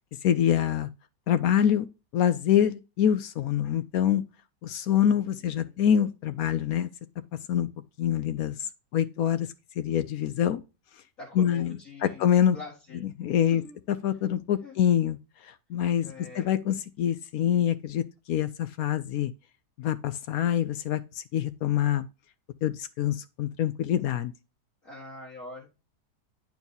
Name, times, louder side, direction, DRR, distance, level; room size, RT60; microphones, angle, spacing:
voice 1, 0.2-0.9 1.3-1.9 2.1-4.2 4.6-6.9 7.5-7.7 8.0-9.5 9.8-10.6 11.4-11.7 12.0-12.6 13.2-13.6 14.0-15.2 15.4-19.3 19.8-22.1 22.6-24.3, left 9 dB, 70° left, 0.9 m, -25 dB
voice 2, 4.9-5.8 11.2-13.0 13.4-13.8 14.6-14.8 16.0-16.5 24.8-25.7, left 3 dB, 50° left, 1.9 m, -45 dB
10.5 x 4.5 x 2.7 m
omnidirectional pair, 1.8 m